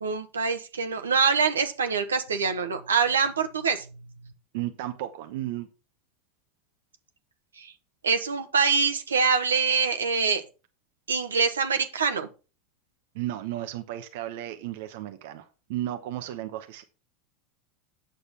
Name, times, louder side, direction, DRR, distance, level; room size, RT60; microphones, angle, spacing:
voice 1, 0.0-3.8 7.6-7.7 8.0-10.4 11.1-12.3, right 5 dB, 85° right, 7 dB, 1.2 m, -25 dB
voice 2, 4.5-5.7 13.1-16.8, right 13 dB, 65° right, 8 dB, 0.9 m, -34 dB
8.5 x 6.6 x 5.7 m, 0.33 s
hypercardioid pair, 85°, 0 cm